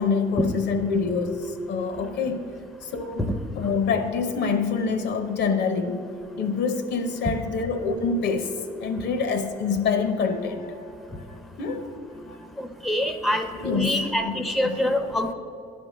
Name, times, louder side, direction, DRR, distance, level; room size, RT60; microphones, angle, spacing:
voice 1, 0.0-2.4 2.8-3.3 3.6-6.0 6.4-11.3 11.6-11.9 12.3-12.6 13.5-14.8, left 5 dB, 75° left, 7 dB, 0.8 m, -26 dB
voice 2, 12.6-15.3, left 1 dB, ahead, 7 dB, 0.5 m, -25 dB
10.5 x 3.5 x 6.4 m, 2.6 s
cardioid pair, 100°, 18 cm